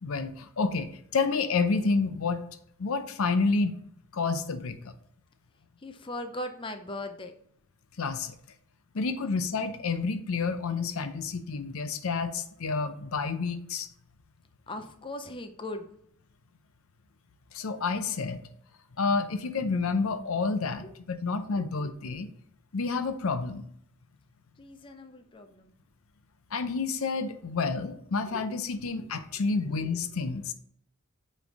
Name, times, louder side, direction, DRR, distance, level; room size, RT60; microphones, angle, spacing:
voice 1, 0.0-2.4 2.8-3.7 4.1-4.9 8.0-8.4 8.9-13.9 17.5-18.4 19.0-22.3 22.7-23.6 26.5-30.5, left 4 dB, 70° left, 10 dB, 0.6 m, -29 dB
voice 2, 5.8-7.3 14.7-15.9 20.8-20.9 21.6-21.7 24.6-25.7 28.3-28.5, left 1 dB, 25° left, 6 dB, 0.4 m, -39 dB
8.3 x 3.2 x 4.0 m, 0.66 s
head